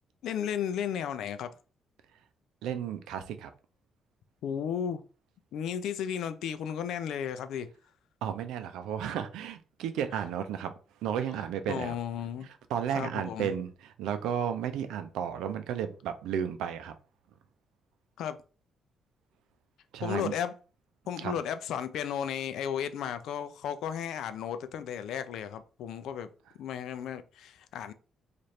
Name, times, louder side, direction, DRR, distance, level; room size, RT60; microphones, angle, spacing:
voice 1, 0.2-1.5 4.4-5.0 5.5-7.7 11.7-12.5 12.9-13.5 18.2-18.4 20.0-20.5 21.1-26.3 26.6-27.9, left 8 dB, 80° left, 0.4 m, -34 dB
voice 2, 2.6-3.5 8.2-10.7 11.0-11.9 12.7-16.9 19.9-20.3 21.2-21.3, right 9 dB, 90° right, 0.5 m, -33 dB
3.1 x 2.5 x 4.2 m
cardioid pair, 90°, 0 cm